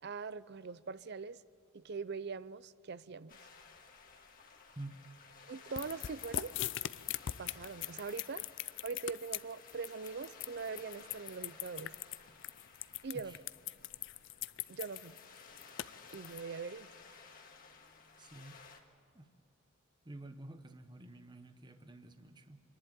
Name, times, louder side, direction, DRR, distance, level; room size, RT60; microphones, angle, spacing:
voice 1, 0.0-1.4 1.7-3.4 5.5-6.5 7.4-8.4 8.8-11.9 13.0-13.4 14.7-15.2 16.1-16.9, right 5 dB, 50° right, 18 dB, 0.5 m, -42 dB
sound 1, 3.3-18.8, left 5 dB, 40° left, 1.9 m, -57 dB
sound 2, 5.8-16.4, left 13 dB, 60° left, 0.4 m, -40 dB
voice 2, 18.2-18.6 19.1-19.3 20.0-22.6, right 2 dB, 20° right, 8 dB, 1.0 m, -49 dB
27.0 x 11.0 x 8.8 m, 2.5 s
head